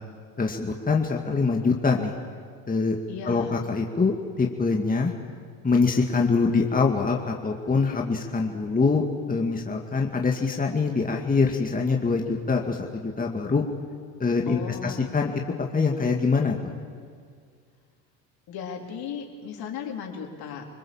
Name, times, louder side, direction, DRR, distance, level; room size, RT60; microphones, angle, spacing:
voice 1, 0.4-2.1 2.7-3.0 3.3-5.1 5.6-13.6 14.2-15.4 15.7-16.6, left 4 dB, 20° left, 1 dB, 2.2 m, -24 dB
voice 2, 3.1-3.6 14.5-15.1 18.5-20.6, left 6 dB, 60° left, 1 dB, 4.2 m, -36 dB
25.5 x 21.0 x 7.4 m, 2.1 s
supercardioid pair, 85°, 41 cm